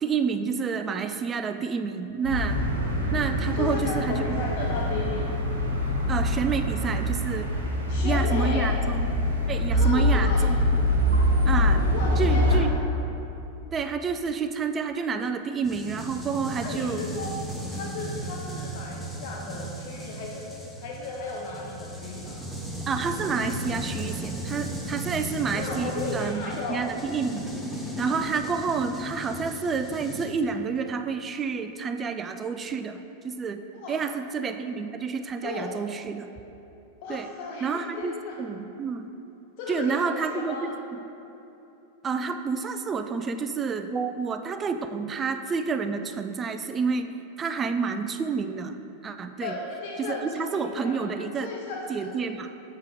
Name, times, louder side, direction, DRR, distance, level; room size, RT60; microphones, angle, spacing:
voice 1, 0.0-2.6 3.1-4.2 6.1-7.5 8.0-9.1 9.5-10.8 11.5-11.8 12.2-12.7 13.7-17.0 22.9-26.4 26.7-27.4 28.0-33.6 33.9-36.3 37.1-37.3 37.6-39.1 39.7-41.0 42.0-48.8 49.0-49.5 50.0-51.5 51.9-52.5, right 5 dB, 20° right, 8 dB, 0.3 m, -29 dB
sound 1, 2.2-12.6, left 1 dB, 75° right, 1.2 m, -24 dB
voice 2, 3.5-5.3 7.9-8.7 9.7-10.5 10.8-11.0 11.9-12.7 16.6-17.3 17.7-22.4 25.5-26.9 33.7-34.1 35.4-35.8 37.0-38.4 39.6-40.7 49.4-51.1 51.4-52.3, left 3 dB, 45° left, -1 dB, 0.6 m, -35 dB
sound 2, 15.6-30.3, right 1 dB, ahead, 0.8 m, -36 dB
7.4 x 3.7 x 4.6 m, 2.9 s
figure-of-eight pair, 90°, 0 cm